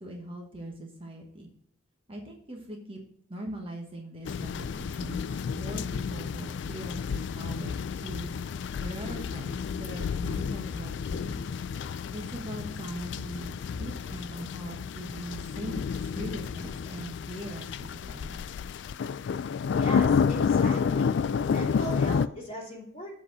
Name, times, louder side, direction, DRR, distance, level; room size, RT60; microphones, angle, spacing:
voice 1, 0.0-1.5 2.1-3.0 3.3-8.3 8.8-11.5 12.1-18.4, right 1 dB, 30° right, 1 dB, 1.2 m, -41 dB
sound 1, 4.2-22.3, left 6 dB, 60° left, 0.3 m, -30 dB
voice 2, 19.7-21.1 21.5-23.1, equal, 30° left, -2 dB, 2.6 m, -38 dB
7.9 x 4.2 x 6.1 m, 0.71 s
head